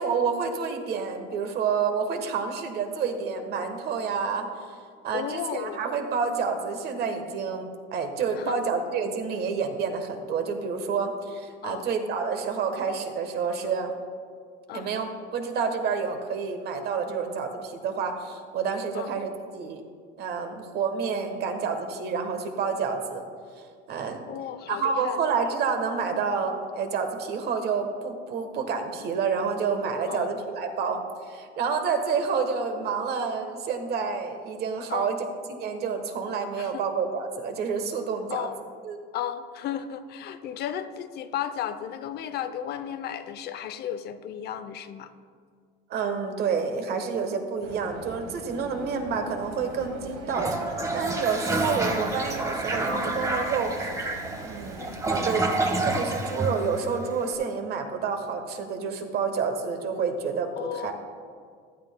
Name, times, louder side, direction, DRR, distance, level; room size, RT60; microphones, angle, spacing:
voice 1, 0.0-4.6 5.0-13.9 14.7-19.3 19.5-19.8 20.2-23.2 23.9-24.2 24.7-31.0 31.3-38.5 38.8-39.0 45.9-54.1 54.4-55.5 55.8-60.9, right 5 dB, 50° right, 6 dB, 1.2 m, -29 dB
voice 2, 5.1-5.8 8.3-8.7 11.6-11.8 14.7-14.9 18.9-19.1 24.3-25.2 30.1-30.3 34.9-35.1 36.6-36.8 38.3-38.6 39.1-45.1 50.3-50.5 54.8-55.0 60.6-60.9, left 10 dB, 50° left, 11 dB, 0.6 m, -34 dB
sound 1, 47.6-55.2, right 3 dB, 85° right, 1.5 m, -42 dB
Toilet flush, 50.3-57.2, right 2 dB, 15° right, 1.1 m, -29 dB
14.5 x 11.0 x 2.2 m, 2.1 s
cardioid pair, 130°, 21 cm